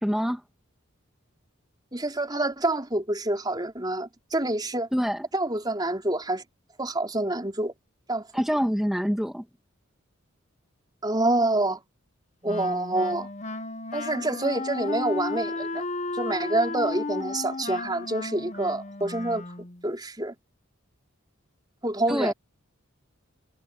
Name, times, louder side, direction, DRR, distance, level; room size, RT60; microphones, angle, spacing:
voice 1, 0.0-0.4 4.9-5.3 8.3-9.4 22.1-22.3, equal, ahead, 1.7 m, -25 dB
voice 2, 1.9-4.9 5.3-6.4 6.8-7.7 8.1-8.3 11.0-11.8 12.4-13.3 13.9-15.8 16.1-19.4 19.8-20.3 21.8-22.3, right 2 dB, 20° right, 4.4 m, -27 dB
Wind instrument woodwind instrument, 12.5-19.8, left 3 dB, 35° left, 0.9 m, -34 dB
head